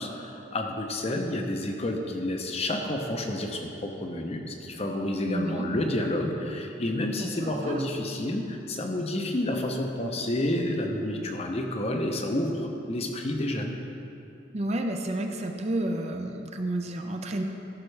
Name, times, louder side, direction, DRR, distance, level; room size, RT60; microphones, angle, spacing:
voice 1, 0.0-13.8, left 1 dB, 35° left, 3 dB, 0.7 m, -30 dB
voice 2, 5.3-5.7 7.2-7.9 14.5-17.4, right 1 dB, 35° right, 4 dB, 0.5 m, -31 dB
13.5 x 5.8 x 3.3 m, 2.7 s
head